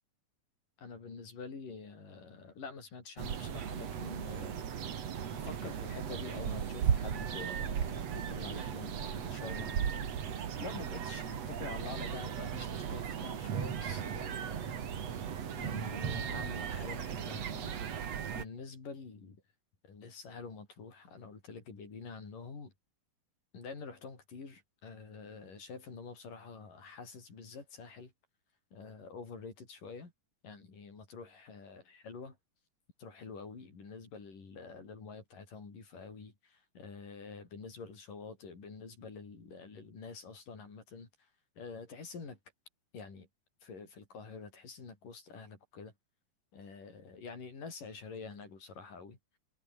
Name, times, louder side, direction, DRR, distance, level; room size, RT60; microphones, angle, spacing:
voice 1, 0.8-4.7 5.3-10.1 10.6-15.1 15.5-17.8 18.3-19.4 19.9-22.7 23.5-28.1 28.7-30.1 30.4-32.4 33.0-41.3 41.6-42.4 42.9-43.3 43.6-45.9 46.5-49.2, left 4 dB, 90° left, 7.4 m, -47 dB
sound 1, 3.2-18.4, right 8 dB, 55° right, 3.0 m, -36 dB
omnidirectional pair, 3.7 m